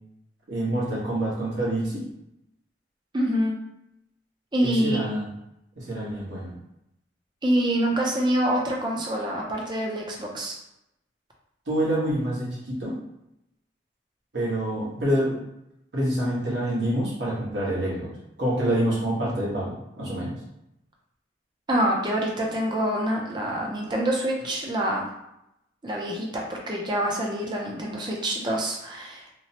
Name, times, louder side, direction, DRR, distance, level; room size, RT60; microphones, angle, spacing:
voice 1, 0.5-2.0 4.6-5.3 5.8-6.5 11.7-13.0 14.3-15.4 15.9-18.1 18.4-20.4, right 1 dB, 80° right, -6 dB, 1.1 m, -27 dB
voice 2, 3.1-3.5 4.5-5.0 7.4-10.6 21.7-25.0 25.8-29.2, right 1 dB, 25° right, 0 dB, 0.4 m, -26 dB
2.9 x 2.0 x 2.8 m, 0.84 s
head